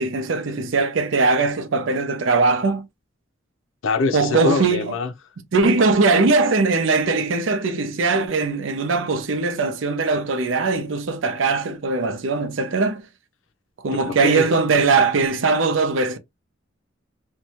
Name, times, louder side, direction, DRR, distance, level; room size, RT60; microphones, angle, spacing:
voice 1, 0.0-2.9 4.1-4.9 5.5-13.0 13.8-16.2, right 3 dB, 80° right, 0.5 m, -20 dB
voice 2, 3.8-5.1 13.9-14.5, left 3 dB, 85° left, 0.5 m, -24 dB
2.6 x 2.2 x 2.8 m
head